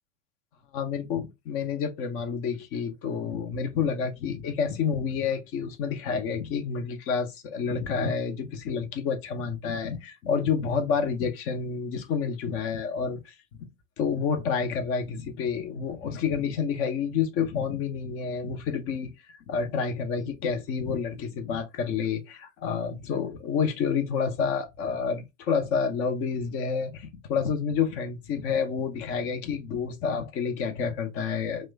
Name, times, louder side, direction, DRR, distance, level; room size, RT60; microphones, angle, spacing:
voice 1, 0.7-13.3 14.0-31.7, left 6 dB, 35° left, 0.6 m, -29 dB
2.9 x 2.1 x 3.2 m
figure-of-eight pair, 85°, 39 cm